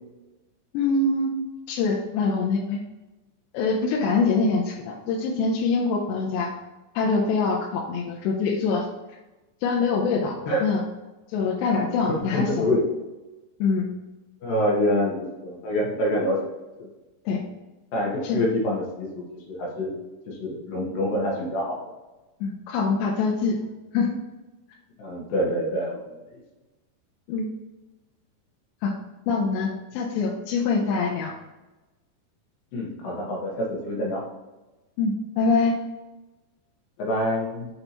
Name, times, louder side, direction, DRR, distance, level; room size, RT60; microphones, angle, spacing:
voice 1, 0.7-1.3 1.7-2.8 3.5-6.5 7.0-8.9 9.6-10.8 11.3-12.7 13.6-13.9 17.3-17.4 18.2-18.4 22.4-23.6 23.9-24.1 27.3-27.5 28.8-28.9 29.3-31.3 35.0-35.8, left 4 dB, 90° left, -2 dB, 2.9 m, -24 dB
voice 2, 12.1-12.8 14.4-16.4 16.8-16.9 17.9-20.0 20.3-21.8 25.0-26.0 32.7-34.2 37.0-37.7, left 1 dB, 65° left, -3 dB, 2.6 m, -26 dB
7.9 x 4.3 x 2.9 m, 1.1 s
omnidirectional pair, 5.0 m